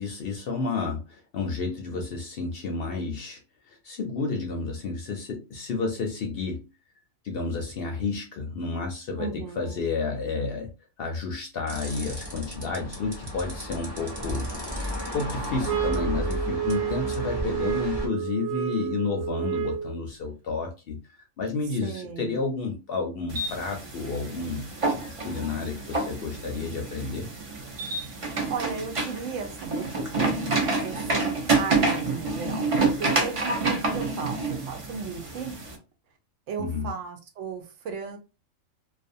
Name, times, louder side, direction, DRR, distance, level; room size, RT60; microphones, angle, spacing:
voice 1, 0.0-6.6 7.2-10.7 11.0-14.5 15.1-21.0 21.4-27.3 36.6-36.9, left 4 dB, 65° left, 0.6 m, -31 dB
voice 2, 9.2-9.8 21.8-22.4 28.5-35.6 36.5-38.2, right 5 dB, 70° right, 0.9 m, -36 dB
sound 1, 11.7-18.1, equal, 20° right, 0.8 m, -34 dB
sound 2, 15.6-20.0, right 10 dB, 90° right, 1.2 m, -30 dB
sound 3, 23.3-35.7, right 3 dB, 45° right, 0.4 m, -28 dB
2.4 x 2.4 x 2.6 m
omnidirectional pair, 1.4 m